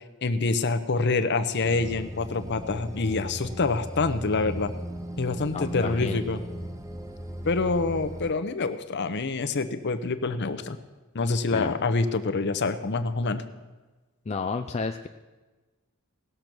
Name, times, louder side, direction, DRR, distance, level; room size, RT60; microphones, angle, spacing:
voice 1, 0.2-4.7 5.2-6.4 7.5-10.8 11.1-13.4, left 3 dB, 55° left, 10 dB, 0.8 m, -26 dB
sound 1, 1.6-8.3, equal, 15° right, 0.9 m, -37 dB
voice 2, 5.5-6.2 11.5-11.7 14.3-15.1, left 4 dB, 30° left, 6 dB, 0.4 m, -31 dB
18.0 x 6.8 x 6.0 m, 1.2 s
head